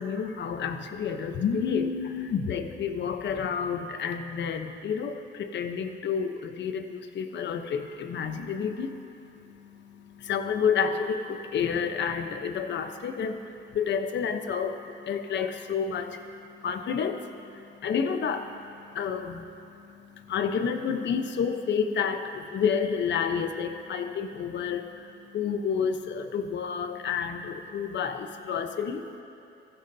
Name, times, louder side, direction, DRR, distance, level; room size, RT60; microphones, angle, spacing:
voice 1, 0.0-29.2, left 6 dB, 65° left, 7 dB, 1.0 m, -30 dB
22.5 x 15.0 x 2.8 m, 2.7 s
cardioid pair, 90°, 20 cm